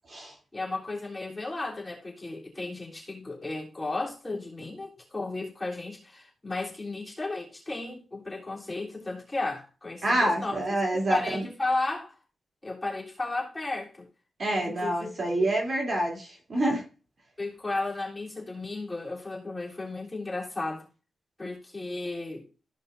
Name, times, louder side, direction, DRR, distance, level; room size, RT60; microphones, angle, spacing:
voice 1, 0.5-10.6 10.9-12.1 12.6-14.1 14.6-15.5 17.4-20.9 21.4-22.5, left 2 dB, 20° left, 3.4 m, -34 dB
voice 2, 10.0-11.4 14.4-16.8, right 1 dB, 40° right, 3.1 m, -27 dB
15.0 x 5.4 x 2.6 m
cardioid pair, 85°, 0 cm